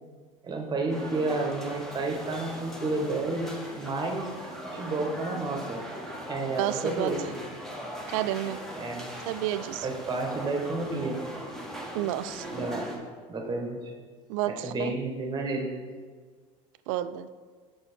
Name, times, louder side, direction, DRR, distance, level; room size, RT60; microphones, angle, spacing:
voice 1, 0.4-4.3 4.7-5.8 6.3-7.4 8.8-9.1 9.8-11.4 12.5-13.0 13.3-13.9 14.5-15.7, right 2 dB, 25° right, 3 dB, 1.3 m, -31 dB
sound 1, 0.9-13.0, equal, ahead, 1.3 m, -40 dB
voice 2, 6.6-7.3 8.1-8.6 9.3-9.9 11.9-12.5 14.3-14.9 16.9-17.3, right 13 dB, 75° right, 13 dB, 0.4 m, -30 dB
6.2 x 5.4 x 4.4 m, 1.5 s
supercardioid pair, 100°, 17 cm